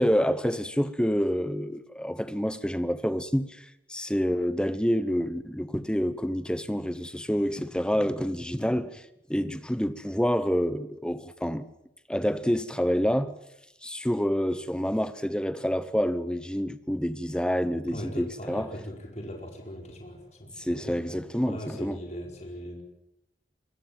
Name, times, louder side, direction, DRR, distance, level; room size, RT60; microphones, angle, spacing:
voice 1, 0.0-9.0 9.3-11.7 12.1-13.3 13.8-18.7 20.6-22.0, equal, 5° left, 1.0 m, -28 dB
voice 2, 17.9-22.8, equal, 40° left, 4.8 m, -40 dB
24.5 x 21.0 x 7.5 m
head